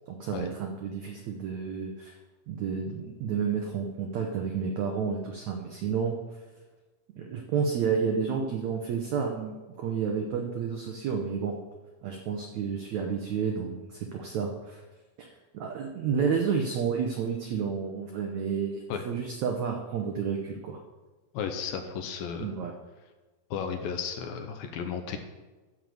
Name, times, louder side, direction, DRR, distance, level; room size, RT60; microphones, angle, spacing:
voice 1, 0.1-2.1 2.5-6.2 7.2-11.6 12.0-14.8 15.2-20.8 22.4-22.7, right 6 dB, 80° right, 2 dB, 1.6 m, -31 dB
voice 2, 21.3-22.5 23.5-25.2, left 7 dB, 75° left, 6 dB, 2.4 m, -34 dB
12.5 x 4.9 x 7.7 m, 1.2 s
omnidirectional pair, 4.6 m